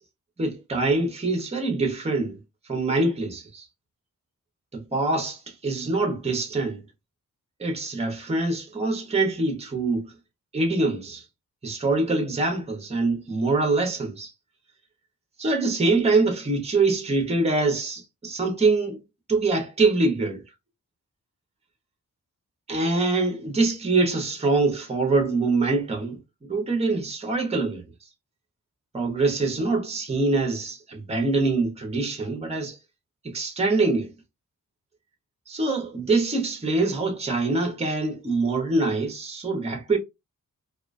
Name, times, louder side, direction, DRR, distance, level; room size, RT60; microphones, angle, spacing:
voice 1, 0.4-2.4 2.6-3.7 4.7-6.8 7.6-10.1 10.5-11.2 11.6-14.3 15.4-19.0 19.3-20.4 22.7-27.8 28.9-32.8 33.2-34.1 35.5-40.0, right 3 dB, 20° right, 0.7 m, -24 dB
2.3 x 2.2 x 2.4 m
wide cardioid pair, 115°, 31 cm